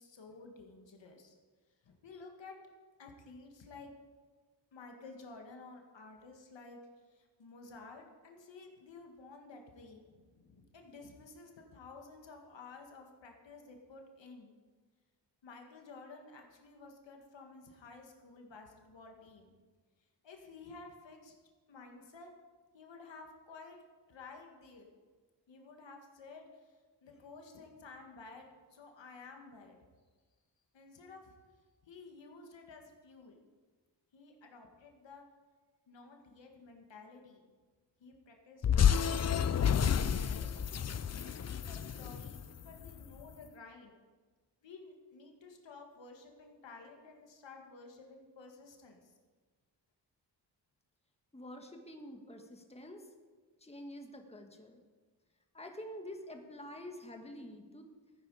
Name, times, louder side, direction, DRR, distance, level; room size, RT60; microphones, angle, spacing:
voice 1, 0.0-1.4 1.8-2.6 3.0-3.9 4.7-6.8 7.0-14.5 15.4-19.5 20.2-21.3 21.7-22.3 22.7-23.8 24.1-24.9 25.5-29.8 30.7-31.4 31.8-33.4 34.1-35.2 35.9-37.5 38.0-40.8 41.1-43.9 44.6-49.1, left 3 dB, 75° left, 2 dB, 1.9 m, -53 dB
sound 1, 38.6-43.0, left 8 dB, 35° left, 0.5 m, -30 dB
voice 2, 51.3-53.0 53.6-54.8 55.5-57.9, left 1 dB, 15° left, 3 dB, 1.5 m, -47 dB
15.0 x 9.2 x 4.9 m, 1.4 s
cardioid pair, 70°, 44 cm